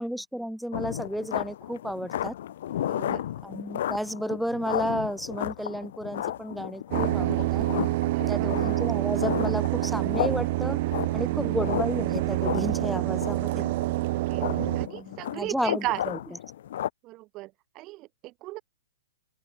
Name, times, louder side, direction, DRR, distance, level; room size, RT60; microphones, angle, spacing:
voice 1, 0.0-2.3 3.4-7.6 8.3-10.8 11.1-13.6 14.8-16.2, equal, ahead, 1.7 m, -32 dB
sound 1, 0.7-16.9, left 11 dB, 65° left, 0.4 m, -34 dB
voice 2, 2.8-3.2 8.1-8.5 13.6-13.7 14.3-14.5 14.8-16.0 17.0-18.6, right 19 dB, 35° right, 0.5 m, -36 dB
sound 2, 6.9-14.9, right 19 dB, 50° right, 0.9 m, -27 dB
open air
hypercardioid pair, 130°, 0 cm